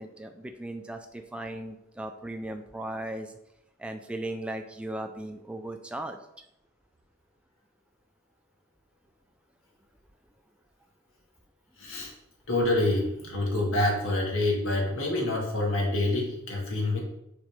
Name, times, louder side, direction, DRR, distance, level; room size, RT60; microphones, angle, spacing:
voice 1, 0.0-3.3 3.8-6.2, right 1 dB, 5° right, 5 dB, 0.4 m, -37 dB
voice 2, 11.8-12.1 12.5-17.0, left 2 dB, 85° left, -1 dB, 2.1 m, -27 dB
6.3 x 4.2 x 5.1 m, 0.83 s
head